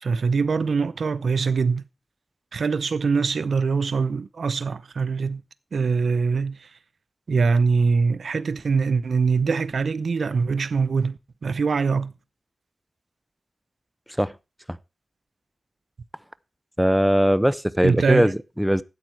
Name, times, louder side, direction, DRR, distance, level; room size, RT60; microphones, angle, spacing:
voice 1, 0.0-1.9 2.5-5.4 5.7-6.7 7.3-12.1 17.8-18.3, right 5 dB, 85° right, 0.7 m, -23 dB
voice 2, 16.8-18.8, equal, 5° right, 0.6 m, -20 dB
13.5 x 8.5 x 4.6 m
wide cardioid pair, 90°, 0 cm